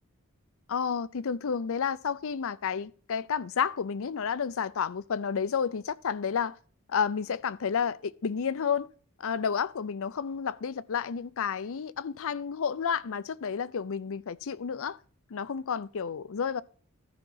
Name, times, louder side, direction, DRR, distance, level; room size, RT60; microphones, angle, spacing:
voice 1, 0.7-6.6 6.9-8.9 9.2-15.0 15.3-16.6, left 6 dB, 65° left, 0.5 m, -31 dB
13.5 x 5.9 x 4.0 m
head